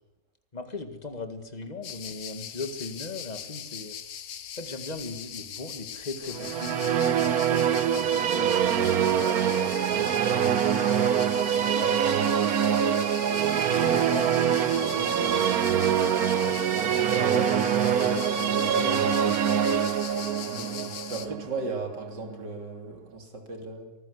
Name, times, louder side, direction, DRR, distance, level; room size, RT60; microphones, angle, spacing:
voice 1, 0.5-4.0 4.6-12.0 13.7-16.6 17.9-19.9, left 3 dB, 25° left, 7 dB, 1.9 m, -39 dB
sound 1, 1.8-21.3, left 9 dB, 85° left, 1.7 m, -40 dB
sound 2, 6.3-22.4, right 9 dB, 65° right, 1.4 m, -24 dB
voice 2, 7.5-8.1 17.2-18.1 20.5-23.9, right 3 dB, 85° right, 4 dB, 3.8 m, -36 dB
24.5 x 15.0 x 8.2 m, 1.0 s
omnidirectional pair, 1.8 m